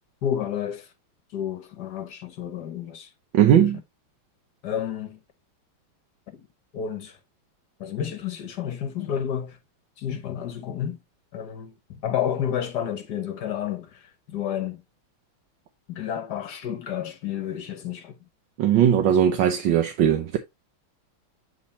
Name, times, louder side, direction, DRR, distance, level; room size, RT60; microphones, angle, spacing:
voice 1, 0.2-0.9 1.3-3.1 3.5-3.7 4.6-5.2 6.3-6.5 6.7-7.2 7.8-9.6 10.0-11.0 11.3-14.8 15.9-18.2, left 9 dB, 60° left, 1.2 m, -30 dB
voice 2, 3.3-3.8 18.6-20.4, right 9 dB, 70° right, 1.4 m, -19 dB
8.6 x 3.6 x 4.1 m
omnidirectional pair, 2.3 m